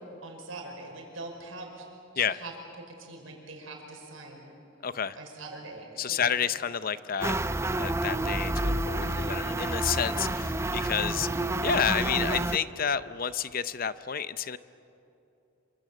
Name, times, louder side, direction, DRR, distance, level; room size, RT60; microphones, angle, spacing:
voice 1, 0.0-1.8 2.1-4.5 5.1-6.4 9.0-9.4, right 2 dB, 90° right, 2 dB, 5.6 m, -43 dB
voice 2, 4.8-5.2 6.0-7.4 7.7-11.3 11.6-14.6, left 7 dB, 45° left, 14 dB, 0.7 m, -30 dB
sound 1, 7.2-12.6, right 2 dB, 15° right, 0.6 m, -29 dB
27.5 x 25.5 x 7.7 m, 2.7 s
head